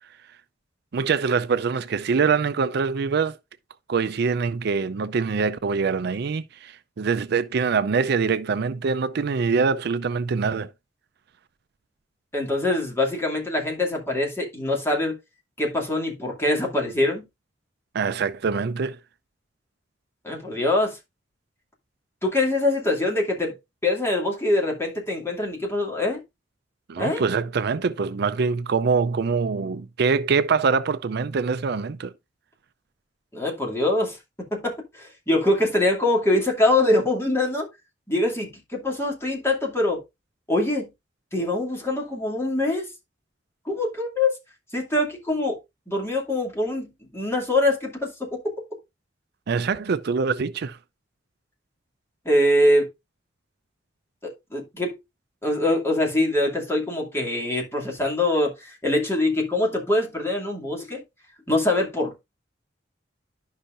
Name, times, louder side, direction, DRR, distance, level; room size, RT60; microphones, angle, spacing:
voice 1, 0.9-3.4 3.9-10.7 17.9-19.0 26.9-32.1 49.5-50.8, right 5 dB, 60° right, 0.4 m, -24 dB
voice 2, 12.3-15.2 15.6-17.3 20.2-21.0 22.2-23.5 23.8-26.2 27.0-27.2 33.3-37.7 38.1-40.0 40.5-40.9 41.3-42.9 43.7-44.3 44.7-45.6 45.9-48.5 52.2-52.9 54.2-54.9 55.4-61.0 61.5-62.2, left 1 dB, 15° left, 2.5 m, -24 dB
11.5 x 5.6 x 2.5 m
head